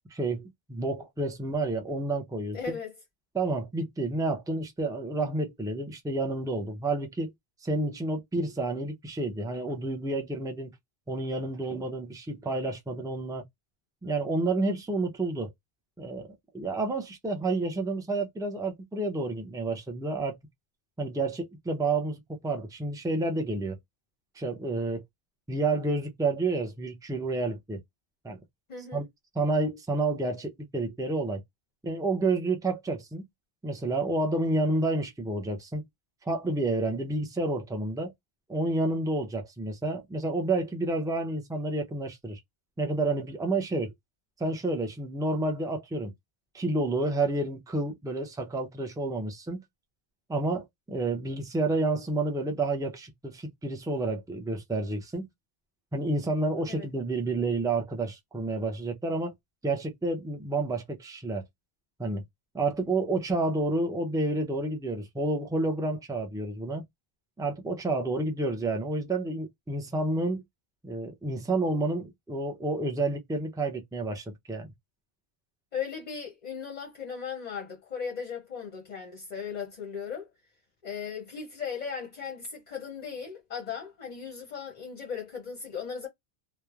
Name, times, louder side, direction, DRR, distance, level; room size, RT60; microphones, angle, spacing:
voice 1, 0.1-2.8 3.3-7.3 7.6-10.7 11.1-13.4 14.0-15.5 16.0-16.3 16.5-20.4 21.0-23.8 24.4-25.0 25.5-27.8 28.2-28.4 28.9-29.0 29.3-31.4 31.8-33.2 33.6-35.9 36.3-38.1 38.5-42.4 42.8-43.9 44.4-46.1 46.5-49.6 50.3-55.3 55.9-59.3 59.6-61.4 62.0-62.2 62.5-66.8 67.4-70.4 70.8-74.7, right 2 dB, 5° right, 0.4 m, -30 dB
voice 2, 2.5-2.9 28.7-29.0 56.7-56.9 75.7-80.3 80.8-86.1, left 6 dB, 45° left, 0.7 m, -37 dB
3.1 x 2.1 x 2.3 m
omnidirectional pair, 1.1 m